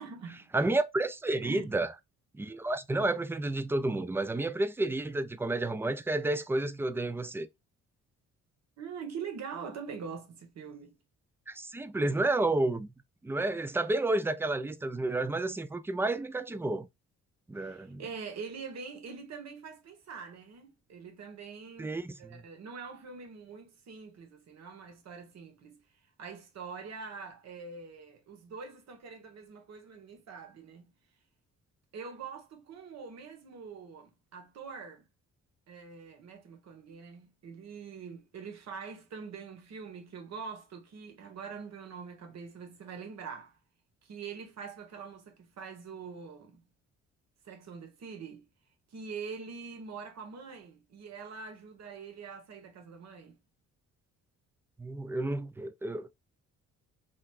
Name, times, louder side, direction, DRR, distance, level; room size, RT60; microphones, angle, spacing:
voice 1, 0.0-0.5 1.4-1.8 8.8-11.0 17.6-25.8 26.2-30.9 31.9-35.1 35.7-43.6 44.0-46.6 47.4-48.4 48.9-53.4, right 5 dB, 60° right, 1.3 m, -44 dB
voice 2, 0.5-1.9 2.3-7.5 11.5-12.9 13.2-16.9 17.5-18.0 21.8-22.4 54.8-56.1, right 2 dB, 10° right, 0.3 m, -31 dB
4.0 x 3.2 x 2.4 m
cardioid pair, 90°, 30 cm